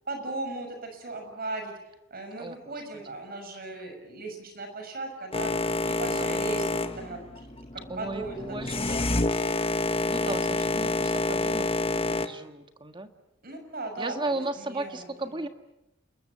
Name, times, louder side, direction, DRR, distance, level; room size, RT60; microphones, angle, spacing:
voice 1, 0.1-1.7 2.1-5.5 5.9-6.6 7.0-7.6 7.9-9.0 13.4-15.0, right 2 dB, 50° right, 5 dB, 6.6 m, -37 dB
voice 2, 2.4-3.1 6.1-6.4 7.9-9.0 10.1-11.7 11.9-13.1 14.0-15.5, right 2 dB, 25° right, 7 dB, 1.7 m, -35 dB
Boat Water vehicle, 5.3-12.3, left 2 dB, 30° left, 1.4 m, -28 dB
30.0 x 21.0 x 8.5 m, 0.92 s
head